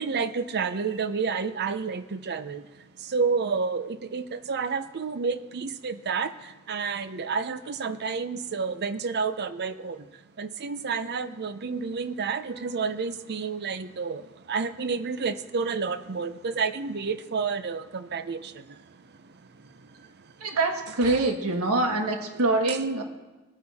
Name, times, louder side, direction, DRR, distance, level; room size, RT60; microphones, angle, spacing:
voice 1, 0.0-20.5 21.0-21.3 22.7-22.8, right 5 dB, 50° right, 12 dB, 0.6 m, -30 dB
voice 2, 20.4-23.0, right 2 dB, 85° right, 4 dB, 1.4 m, -25 dB
21.0 x 9.1 x 4.2 m, 1.1 s
head